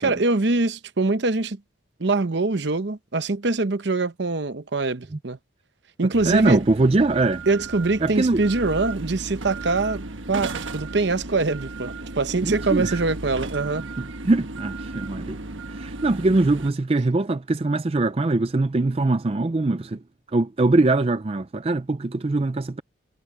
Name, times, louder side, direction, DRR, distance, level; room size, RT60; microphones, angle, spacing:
voice 1, 0.0-1.6 2.0-5.4 6.0-6.6 7.5-13.8, right 3 dB, 65° right, 0.9 m, -23 dB
sound 1, 6.1-16.7, right 2 dB, 85° right, 1.3 m, -35 dB
voice 2, 6.3-7.4 8.0-8.4 12.4-13.0 14.0-15.4 15.8-20.0 20.3-22.8, right 2 dB, 30° right, 0.4 m, -22 dB
head